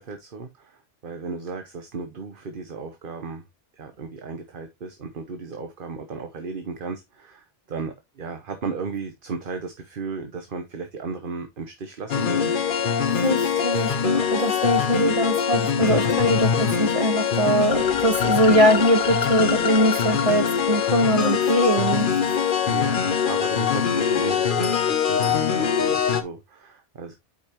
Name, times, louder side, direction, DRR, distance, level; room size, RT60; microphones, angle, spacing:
voice 1, 0.0-3.4 3.8-12.5 22.6-27.1, right 4 dB, 50° right, 1.1 m, -35 dB
sound 1, 12.1-26.2, left 7 dB, 50° left, 0.9 m, -23 dB
voice 2, 13.1-22.1, right 1 dB, 30° right, 1.2 m, -22 dB
8.4 x 5.3 x 2.9 m
omnidirectional pair, 1.2 m